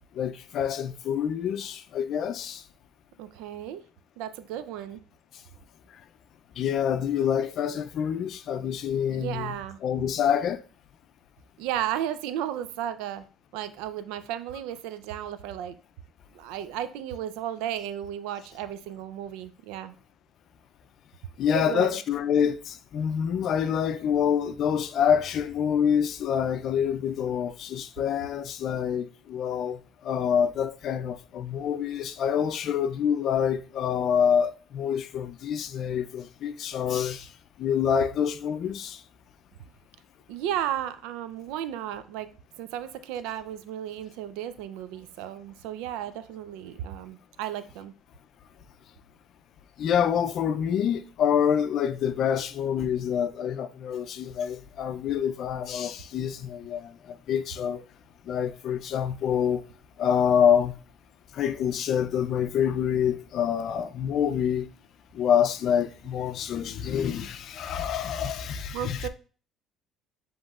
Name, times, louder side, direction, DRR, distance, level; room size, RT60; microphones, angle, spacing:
voice 1, 0.1-2.6 5.9-6.0 6.6-9.6 9.8-10.6 21.4-37.3 37.6-39.0 49.8-57.8 58.2-59.6 60.0-60.7 61.3-64.7 65.1-69.1, left 8 dB, 60° left, 0.4 m, -26 dB
voice 2, 3.2-3.8 4.2-5.0 9.1-9.8 11.6-13.3 13.5-15.8 16.3-19.9 21.5-21.9 40.3-42.3 42.6-47.9 68.7-69.1, right 11 dB, 85° right, 0.4 m, -34 dB
7.3 x 3.0 x 2.4 m
supercardioid pair, 85°, 0 cm